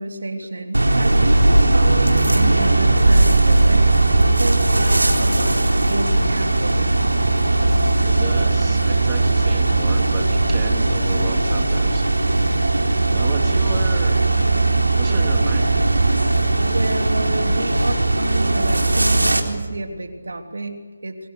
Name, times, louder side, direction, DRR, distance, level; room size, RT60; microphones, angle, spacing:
voice 1, 0.0-7.0 16.6-21.3, right 2 dB, 70° right, 5 dB, 3.4 m, -30 dB
sound 1, 0.7-19.4, right 2 dB, 90° right, 3.9 m, -18 dB
voice 2, 8.0-12.1 13.1-14.2 15.0-15.8, right 6 dB, 20° right, 3 dB, 2.4 m, -33 dB
28.0 x 24.5 x 6.6 m, 1.4 s
figure-of-eight pair, 155°, 0 cm